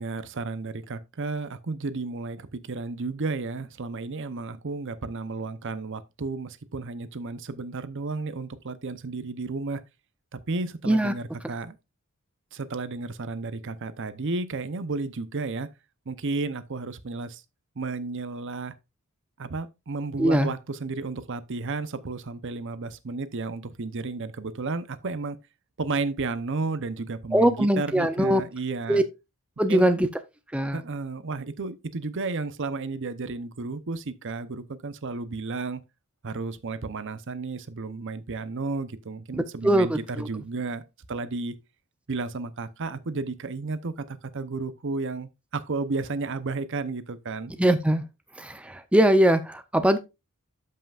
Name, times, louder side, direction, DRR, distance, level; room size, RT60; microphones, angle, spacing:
voice 1, 0.0-9.8 10.3-11.8 12.5-15.7 16.1-17.4 17.8-18.7 19.4-25.4 25.8-29.0 29.7-29.9 30.7-35.8 36.2-40.8 41.1-41.6 42.1-47.5, right 3 dB, 60° right, 0.7 m, -32 dB
voice 2, 20.2-20.5 27.3-28.4 28.9-29.0 29.6-30.1 30.5-30.8 39.6-40.3 47.6-48.0 48.4-50.0, right 1 dB, 5° right, 0.6 m, -21 dB
13.0 x 5.6 x 2.4 m
head